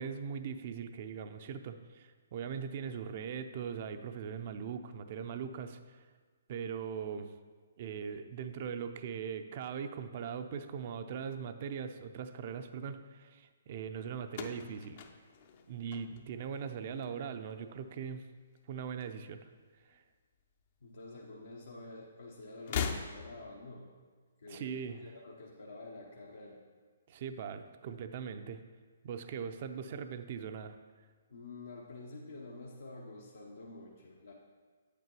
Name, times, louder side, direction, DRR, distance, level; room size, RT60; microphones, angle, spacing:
voice 1, 0.0-5.8 6.5-7.3 7.8-15.0 15.7-18.2 18.7-19.4 19.9-20.0 24.5-25.0 27.1-28.6 29.0-30.8, right 7 dB, 45° right, 9 dB, 0.5 m, -40 dB
sound 1, 14.3-16.6 16.9-17.5 18.6-19.6 19.8-20.0 21.1-21.2 22.6-23.6, left 7 dB, 45° left, 0.6 m, -40 dB
voice 2, 20.8-23.9 24.4-26.6 31.3-34.3, left 2 dB, 70° left, -2 dB, 0.9 m, -49 dB
8.8 x 8.3 x 3.0 m, 1.5 s
figure-of-eight pair, 130°, 0 cm